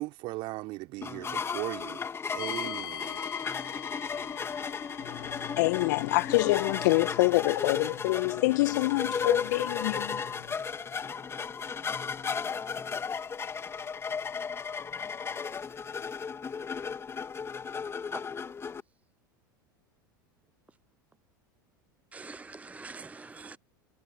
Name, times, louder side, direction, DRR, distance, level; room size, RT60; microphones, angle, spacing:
voice 1, 0.0-3.2, right 21 dB, 50° right, 3.1 m, -38 dB
sound 1, 1.0-18.8, left 6 dB, 20° left, 2.4 m, -35 dB
sound 2, 2.4-17.2, left 11 dB, 80° left, 4.0 m, -48 dB
voice 2, 5.0-10.5, left 22 dB, 60° left, 1.0 m, -27 dB
voice 3, 22.1-23.6, right 3 dB, 10° right, 0.4 m, -44 dB
hypercardioid pair, 85°, 11 cm